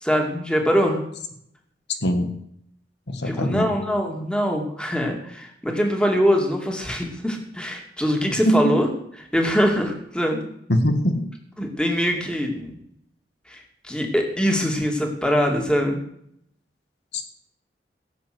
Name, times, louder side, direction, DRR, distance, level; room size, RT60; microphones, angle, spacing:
voice 1, 0.0-1.0 3.2-8.9 9.3-10.4 11.6-12.8 13.5-16.0, equal, 5° left, 2 dB, 2.4 m, -23 dB
voice 2, 2.0-2.3 3.1-3.7 8.3-8.8 10.7-11.3 17.1-17.2, equal, 75° left, 8 dB, 1.5 m, -22 dB
17.0 x 8.0 x 7.9 m, 0.72 s
head